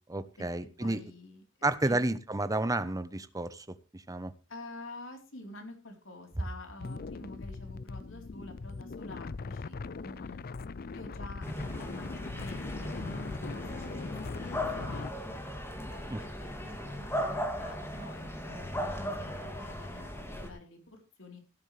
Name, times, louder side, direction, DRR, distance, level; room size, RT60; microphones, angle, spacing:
voice 1, 0.1-1.0 1.6-3.7 3.9-4.3 16.1-16.2, right 2 dB, 20° right, 13 dB, 1.0 m, -31 dB
voice 2, 0.8-1.4 1.8-2.1 4.5-10.4 10.9-14.1 14.4-15.4 15.9-21.4, left 2 dB, 90° left, 3 dB, 4.0 m, -48 dB
sound 1, 6.8-15.1, left 4 dB, 50° left, 0.5 m, -40 dB
sound 2, 11.4-20.5, equal, 15° left, 2.7 m, -37 dB
16.5 x 10.5 x 3.4 m, 0.33 s
head